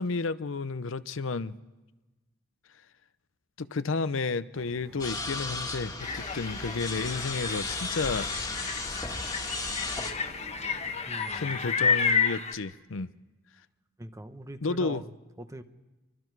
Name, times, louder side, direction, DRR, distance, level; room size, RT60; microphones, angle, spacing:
voice 1, 0.0-1.6 3.6-8.3 8.7-9.1 11.3-13.1 14.6-15.0, left 4 dB, 75° left, 0.6 m, -32 dB
sound 1, 4.5-10.9, right 1 dB, 50° right, 3.3 m, -50 dB
sound 2, 5.0-10.1, left 3 dB, 15° left, 1.9 m, -35 dB
sound 3, 6.0-12.5, left 5 dB, 35° left, 1.2 m, -31 dB
voice 2, 11.1-11.6 14.0-15.1 15.4-15.6, right 1 dB, 15° right, 0.9 m, -42 dB
28.5 x 24.5 x 4.7 m
head